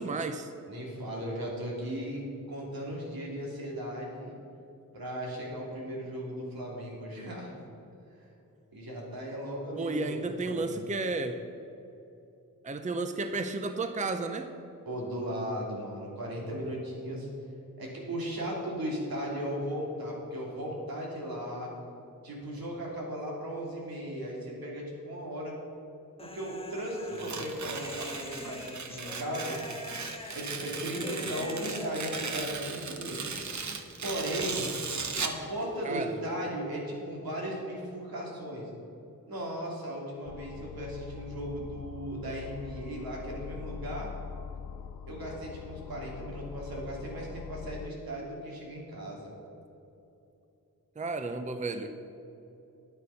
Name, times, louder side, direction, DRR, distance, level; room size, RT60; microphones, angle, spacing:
voice 1, 0.0-0.5 9.8-11.4 12.6-14.5 35.8-36.2 51.0-51.9, right 3 dB, 20° right, 8 dB, 0.6 m, -32 dB
voice 2, 0.7-2.2 2.5-4.3 4.9-7.5 8.2-8.3 8.7-10.7 14.8-17.3 17.8-21.7 22.2-25.6 26.2-29.6 30.3-33.5 34.0-34.6 35.2-38.7 39.3-44.1 45.1-49.3, equal, 80° right, -3 dB, 2.9 m, -36 dB
Human voice, 26.2-32.6, left 2 dB, 15° left, 0.7 m, -45 dB
Tearing, 27.1-35.4, right 5 dB, 55° right, 1.0 m, -37 dB
sound 1, 40.3-47.9, left 7 dB, 75° left, 0.5 m, -43 dB
10.0 x 9.1 x 5.8 m, 2.9 s
wide cardioid pair, 85°, 35 cm